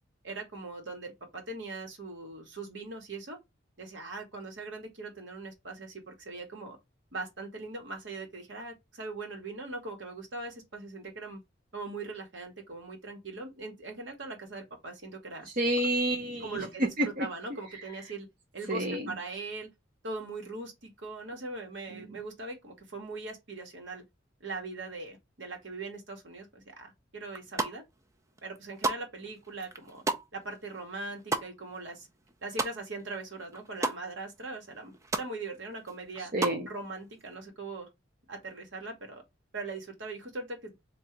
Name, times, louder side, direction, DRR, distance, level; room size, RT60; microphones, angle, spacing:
voice 1, 0.2-3.4 3.8-6.8 7.1-11.4 11.7-15.5 16.4-18.3 18.5-19.7 20.0-24.0 24.4-27.8 28.4-30.0 30.3-32.1 32.4-36.3 36.7-37.9 38.3-39.2 39.5-40.7, right 3 dB, 65° right, 1.3 m, -40 dB
voice 2, 15.5-17.3 18.7-19.1 21.9-22.2 36.3-36.7, right 1 dB, 45° right, 0.8 m, -29 dB
sound 1, 27.3-28.0 28.4-33.1 33.4-34.0 34.4-34.5 34.7-35.3 35.7-36.6, right 3 dB, 15° right, 0.5 m, -33 dB
3.8 x 2.6 x 4.4 m
head